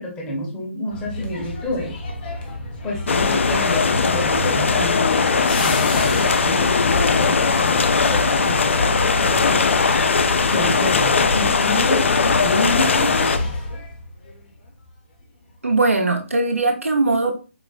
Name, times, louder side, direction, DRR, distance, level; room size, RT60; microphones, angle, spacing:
voice 1, 0.0-2.0 2.8-9.9 10.5-13.4, left 1 dB, 15° left, -2 dB, 0.7 m, -28 dB
sound 1, 0.9-14.9 15.2-15.5, left 2 dB, 45° left, 0.9 m, -32 dB
sound 2, 3.1-13.4, left 4 dB, 65° left, 0.4 m, -19 dB
voice 2, 15.6-17.3, right 3 dB, 85° right, 4 dB, 0.8 m, -20 dB
4.7 x 2.1 x 2.4 m, 0.34 s
figure-of-eight pair, 145°, 7 cm